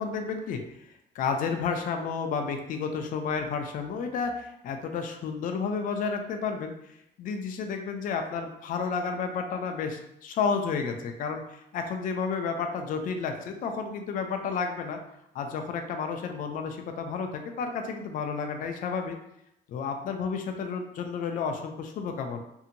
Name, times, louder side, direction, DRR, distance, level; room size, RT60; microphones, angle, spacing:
voice 1, 0.0-15.0 15.3-19.2 19.7-22.4, left 5 dB, 55° left, 5 dB, 0.4 m, -31 dB
2.7 x 2.5 x 2.6 m, 0.80 s
cardioid pair, 110°, 17 cm